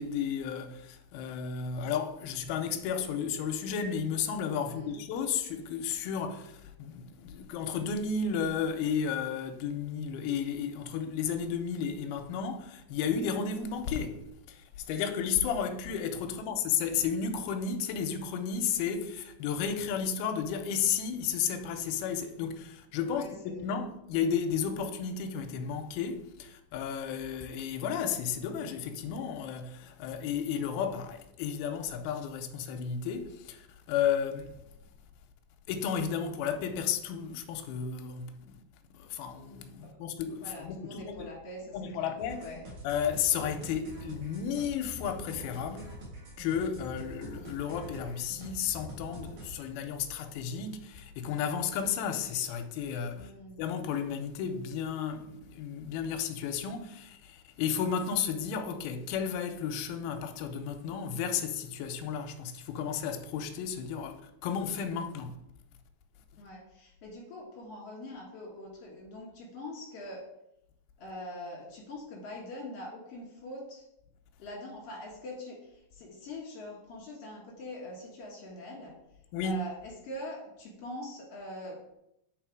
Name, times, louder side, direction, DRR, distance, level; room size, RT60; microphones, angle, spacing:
voice 1, 0.0-14.2 14.5-34.5 35.7-38.6 38.9-41.3 41.7-42.5 42.8-45.9 46.4-53.3 53.6-65.4 79.3-79.6, left 7 dB, 80° left, 2.3 m, -33 dB
voice 2, 4.6-5.0 16.3-16.5 23.1-23.7 39.8-40.0 40.4-42.1 42.4-42.6 53.1-53.6 66.4-70.3 71.0-73.8 74.4-78.9 79.4-81.8, left 1 dB, 55° left, 1.8 m, -43 dB
sound 1, 42.2-49.5, right 1 dB, 55° right, 3.2 m, -45 dB
8.3 x 4.0 x 4.6 m
omnidirectional pair, 5.0 m